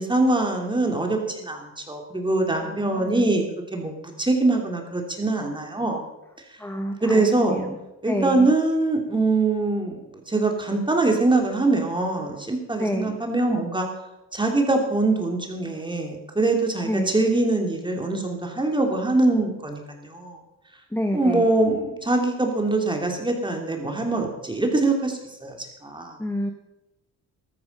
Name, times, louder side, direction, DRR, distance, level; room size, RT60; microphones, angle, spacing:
voice 1, 0.0-3.4 3.7-6.1 7.0-7.6 8.0-10.0 10.3-13.9 14.3-20.4 21.1-25.6 25.8-26.2, right 2 dB, 15° right, 2 dB, 3.1 m, -23 dB
voice 2, 2.6-3.4 6.6-7.7 8.0-8.5 12.8-13.2 16.8-17.1 20.9-21.5 26.2-26.5, equal, 5° left, 4 dB, 1.5 m, -28 dB
13.5 x 13.5 x 5.4 m, 0.95 s
cardioid pair, 90°, 30 cm